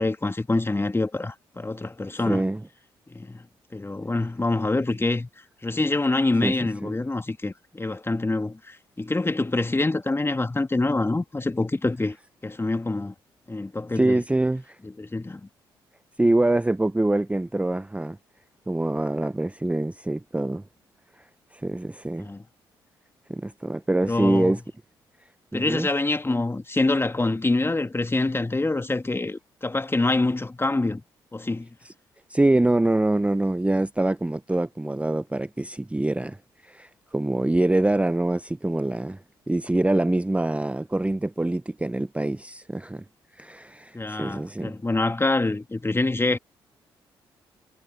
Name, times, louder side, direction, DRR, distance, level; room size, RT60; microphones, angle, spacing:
voice 1, 0.0-2.4 3.1-3.5 3.7-5.3 5.6-12.2 12.4-13.1 13.5-14.2 14.8-15.5 22.2-22.4 24.1-24.5 25.5-31.0 31.3-31.7 43.9-46.4, left 2 dB, 20° left, 2.2 m, -26 dB
voice 2, 2.3-2.6 6.4-6.5 6.8-6.9 14.0-14.8 16.2-18.2 18.7-20.6 21.5-22.3 23.3-24.6 25.5-25.9 31.8-31.9 32.3-36.4 36.6-39.2 39.5-43.0 43.3-44.7, right 2 dB, 10° right, 0.8 m, -24 dB
hypercardioid pair, 40°, 12 cm